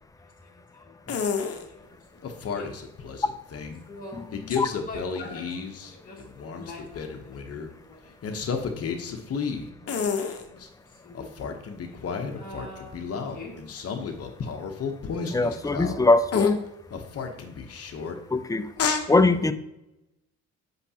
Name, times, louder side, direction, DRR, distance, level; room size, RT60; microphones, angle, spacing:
voice 1, 0.2-2.7 3.9-13.6, left 2 dB, 30° left, -3 dB, 2.0 m, -46 dB
sound 1, 1.1-1.6 2.2-3.8 4.3-5.9 6.2-7.7 8.2-10.7 11.1-16.0 16.3-16.5 16.9-18.1 18.8-19.0, left 6 dB, 50° left, 0.9 m, -30 dB
voice 2, 15.3-16.6 18.3-18.7 19.1-19.5, left 2 dB, 10° left, 11 dB, 0.4 m, -22 dB
7.9 x 5.7 x 2.8 m, 0.89 s
cardioid pair, 90°, 30 cm